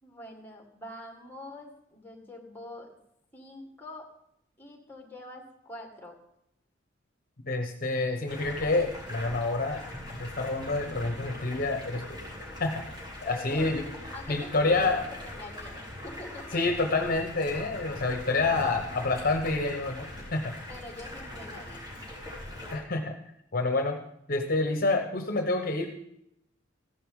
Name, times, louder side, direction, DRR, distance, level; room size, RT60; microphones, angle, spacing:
voice 1, 0.0-3.0 3.3-4.1 4.6-6.2 13.2-13.7 14.1-16.8 20.7-22.1, left 1 dB, 10° left, 2 dB, 1.9 m, -45 dB
voice 2, 7.4-9.8 10.2-12.2 12.6-12.8 13.2-13.8 14.3-15.0 16.5-20.5 22.7-23.1 23.5-24.0 24.3-25.9, left 3 dB, 50° left, 4 dB, 1.0 m, -28 dB
Stream, 8.3-22.8, left 1 dB, 25° right, 3.9 m, -42 dB
14.5 x 11.0 x 3.7 m, 0.77 s
head